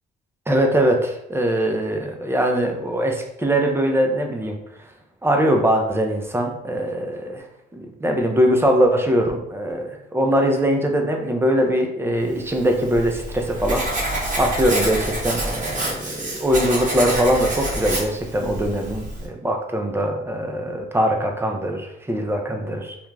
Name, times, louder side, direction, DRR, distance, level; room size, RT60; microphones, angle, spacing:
voice 1, 0.5-4.6 5.2-7.4 7.7-23.0, equal, 10° right, 2 dB, 0.5 m, -22 dB
Writing, 12.5-19.3, right 1 dB, 40° right, 1.0 m, -27 dB
2.4 x 2.2 x 3.2 m, 0.78 s
cardioid pair, 90°, 20 cm